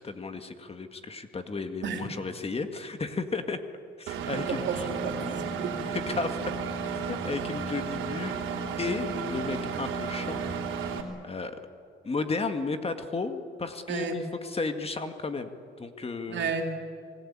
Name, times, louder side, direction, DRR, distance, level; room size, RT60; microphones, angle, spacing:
voice 1, 0.0-3.6 4.0-5.3 5.8-6.4 7.1-8.4 8.8-10.4 11.2-11.6 12.0-16.5, left 4 dB, 30° left, 7 dB, 2.0 m, -34 dB
Engine, 4.1-11.0, right 5 dB, 90° right, 3.3 m, -33 dB
voice 2, 4.3-5.2 5.4-5.8 7.5-7.6 13.9-14.2 16.3-16.6, right 6 dB, 65° right, 4 dB, 3.6 m, -32 dB
26.5 x 20.0 x 8.9 m, 2.3 s
cardioid pair, 90°, 20 cm